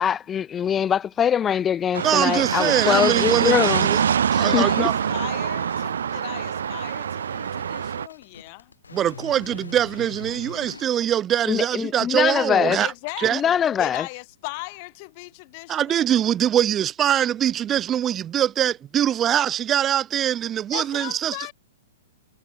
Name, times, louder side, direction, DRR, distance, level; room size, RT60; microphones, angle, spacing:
voice 1, 0.0-3.9 4.3-4.9 11.5-12.8 13.3-14.1, left 8 dB, 20° left, 1.9 m, -23 dB
sound 1, 1.9-8.1, right 8 dB, 65° right, 1.0 m, -24 dB
voice 2, 2.0-4.0 4.4-5.0 8.9-12.9 13.2-13.4 15.7-21.4, right 10 dB, 25° right, 2.3 m, -23 dB
sound 2, 4.3-10.8, left 5 dB, 75° left, 6.8 m, -44 dB
voice 3, 4.4-8.7 12.8-16.0 20.7-21.5, left 28 dB, 40° left, 7.0 m, -37 dB
figure-of-eight pair, 110°, 0 cm